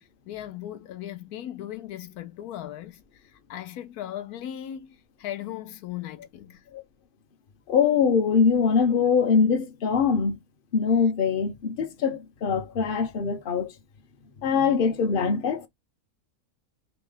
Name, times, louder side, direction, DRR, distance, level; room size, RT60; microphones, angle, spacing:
voice 1, 0.0-6.6, left 12 dB, 85° left, 1.2 m, -38 dB
voice 2, 7.7-10.4 10.7-13.7 14.4-15.7, left 6 dB, 45° left, 0.8 m, -23 dB
3.0 x 3.0 x 3.9 m
omnidirectional pair, 1.5 m